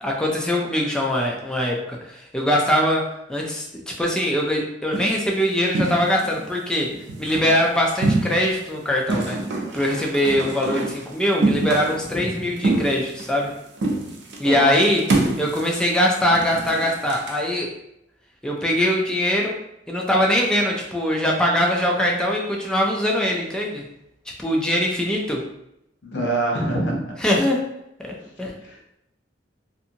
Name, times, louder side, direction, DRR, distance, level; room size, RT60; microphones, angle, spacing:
voice 1, 0.0-6.9 7.2-9.4 9.7-13.5 14.4-15.0 15.4-17.7 18.4-19.5 19.9-23.8 24.4-25.4 27.2-27.6 28.0-28.5, equal, 5° left, -2 dB, 0.3 m, -22 dB
sound 1, 4.9-5.2 5.7-6.4 6.9-7.6 8.0-8.7 9.1-11.1 11.4-12.1 12.6-13.5 13.8-14.4 14.8-17.4, right 2 dB, 80° right, 0.5 m, -25 dB
voice 2, 12.1-12.5 14.4-14.7 26.0-27.0 28.6-28.9, right 1 dB, 80° left, -1 dB, 0.7 m, -25 dB
2.6 x 2.5 x 2.7 m, 0.81 s
head